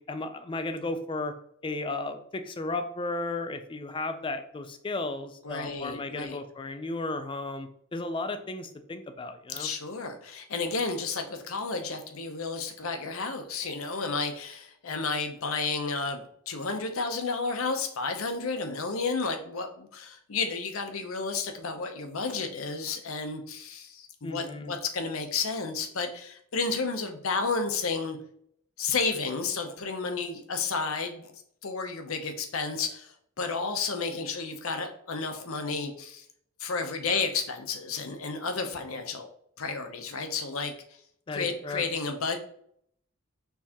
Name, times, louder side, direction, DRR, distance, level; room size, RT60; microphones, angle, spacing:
voice 1, 0.0-1.3 1.6-9.7 24.2-24.7 41.3-41.8, left 2 dB, 25° left, 8 dB, 0.4 m, -34 dB
voice 2, 5.4-6.4 9.5-28.2 28.8-31.3 31.6-36.3 36.6-39.3 39.6-40.7 41.3-42.4, left 4 dB, 85° left, 6 dB, 0.7 m, -32 dB
4.6 x 3.3 x 2.8 m, 0.66 s
head